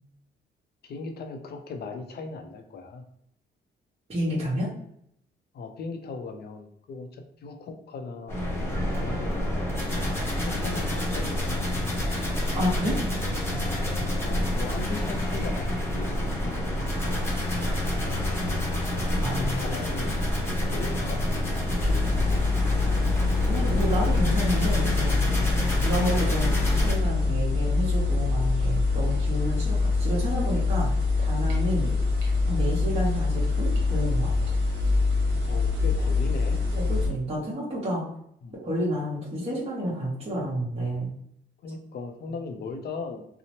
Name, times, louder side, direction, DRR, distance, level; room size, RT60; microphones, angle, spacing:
voice 1, 0.8-3.0 5.5-8.5 8.9-9.7 10.3-11.3 14.2-16.1 16.4-16.8 19.4-20.1 20.7-21.2 21.8-22.4 31.8-32.0 35.5-36.6 38.4-38.6 41.6-43.3, left 4 dB, 55° left, 5 dB, 0.5 m, -38 dB
voice 2, 4.1-4.7 12.5-13.0 19.2-19.5 23.5-25.2 25.8-30.9 31.2-31.9 32.5-34.5 36.7-38.0 38.5-41.1, equal, 30° right, -7 dB, 0.9 m, -30 dB
sound 1, 8.3-26.9, left 1 dB, 10° left, 0.9 m, -28 dB
sound 2, 21.8-37.1, left 3 dB, 65° right, 0.9 m, -25 dB
2.8 x 2.0 x 2.9 m, 0.71 s
cardioid pair, 90°, 20 cm